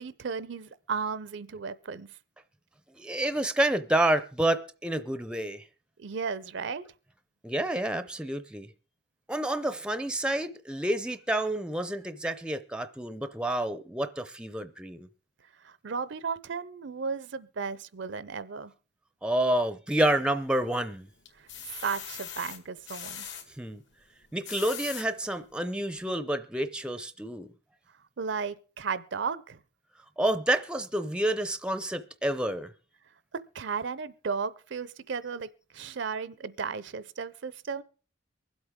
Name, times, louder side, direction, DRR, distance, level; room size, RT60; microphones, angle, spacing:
voice 1, 0.0-2.2 6.0-6.9 15.6-18.7 21.3-23.3 28.2-29.6 33.5-35.5 35.7-37.8, right 5 dB, 60° right, 0.5 m, -34 dB
voice 2, 3.0-5.6 7.4-8.7 9.3-15.1 19.2-21.1 23.6-23.8 24.3-27.5 30.2-32.7, right 1 dB, 5° right, 0.5 m, -29 dB
sound 1, 20.2-20.8 21.3-23.4 24.2-25.1 25.7-25.8 26.1-26.2, left 8 dB, 65° left, 2.0 m, -41 dB
23.5 x 8.0 x 3.6 m
head